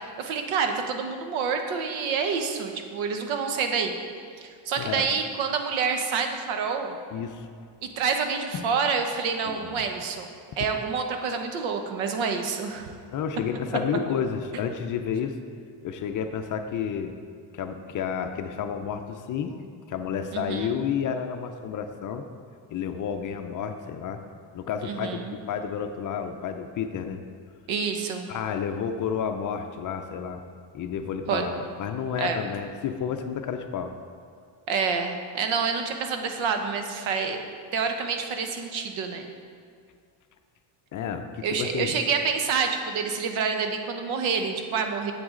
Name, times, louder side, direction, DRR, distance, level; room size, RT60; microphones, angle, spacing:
voice 1, 0.2-4.0 4.4-7.0 7.8-10.3 10.6-12.9 20.3-20.8 24.8-25.4 27.7-28.3 31.3-31.4 32.2-32.4 34.7-37.4 37.7-39.3 41.4-45.1, right 5 dB, 70° right, 5 dB, 1.1 m, -28 dB
voice 2, 4.8-5.1 7.1-7.5 8.5-8.7 9.5-9.8 13.1-15.4 15.8-17.1 17.5-19.6 19.9-22.2 22.7-24.2 24.5-25.2 25.5-27.2 28.3-30.4 30.7-34.0 40.9-42.0, left 7 dB, 40° left, 6 dB, 0.5 m, -31 dB
9.3 x 8.1 x 3.8 m, 2.2 s
cardioid pair, 140°, 50 cm